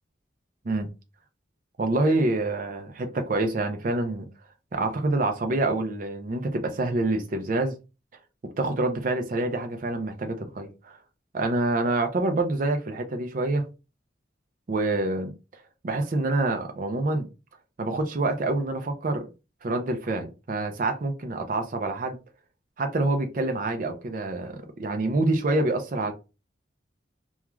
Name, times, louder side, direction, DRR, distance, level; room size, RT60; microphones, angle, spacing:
voice 1, 1.8-4.3 4.7-7.8 8.4-11.0 11.3-13.7 14.7-15.3 15.8-17.3 17.8-19.3 19.6-22.2 22.8-26.1, right 2 dB, 45° right, 0.4 m, -26 dB
2.3 x 2.3 x 3.0 m
head